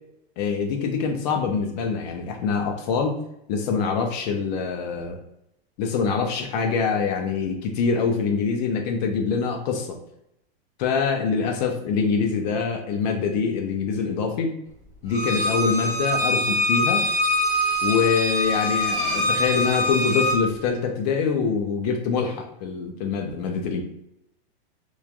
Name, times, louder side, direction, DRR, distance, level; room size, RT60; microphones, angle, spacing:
voice 1, 0.4-3.2 3.5-5.2 5.8-10.0 10.8-14.6 15.0-17.1 17.8-23.8, left 5 dB, 45° left, 3 dB, 0.5 m, -24 dB
Bowed string instrument, 15.1-20.4, left 1 dB, 10° right, 1.0 m, -23 dB
3.0 x 2.3 x 2.4 m, 0.81 s
supercardioid pair, 155°, 31 cm